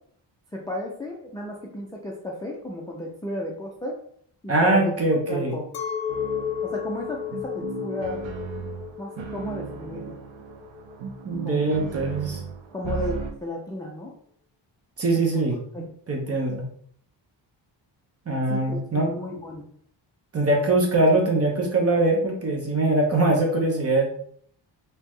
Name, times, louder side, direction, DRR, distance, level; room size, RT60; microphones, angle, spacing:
voice 1, 0.5-4.0 4.4-4.9 5.3-5.7 6.6-8.2 9.0-10.2 11.4-11.8 12.7-14.1 15.2-15.3 15.7-15.9 18.5-19.7, left 1 dB, 10° left, -1 dB, 0.3 m, -34 dB
voice 2, 4.5-5.6 11.2-12.4 15.0-15.6 16.1-16.7 18.3-19.1 20.3-24.1, right 2 dB, 30° right, 0 dB, 0.9 m, -22 dB
Chink clink, 5.7-11.2, left 8 dB, 75° left, 0.6 m, -33 dB
sound 1, 6.1-13.3, right 5 dB, 85° right, 0.6 m, -36 dB
3.5 x 2.9 x 3.2 m, 0.62 s
wide cardioid pair, 165°, 45 cm